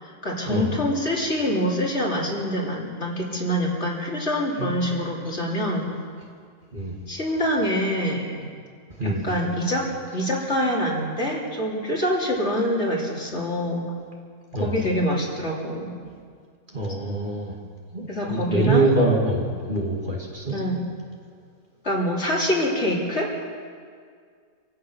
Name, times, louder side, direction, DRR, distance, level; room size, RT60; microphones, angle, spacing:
voice 1, 0.0-5.9 7.1-8.6 9.0-13.9 14.6-15.9 18.1-18.9 20.5-20.8 21.8-23.3, equal, 45° left, -3 dB, 3.5 m, -25 dB
voice 2, 9.0-9.3 14.5-14.8 16.7-17.5 17.9-20.5, right 2 dB, 30° right, -2 dB, 2.6 m, -24 dB
25.5 x 16.5 x 6.4 m, 2.1 s
omnidirectional pair, 1.6 m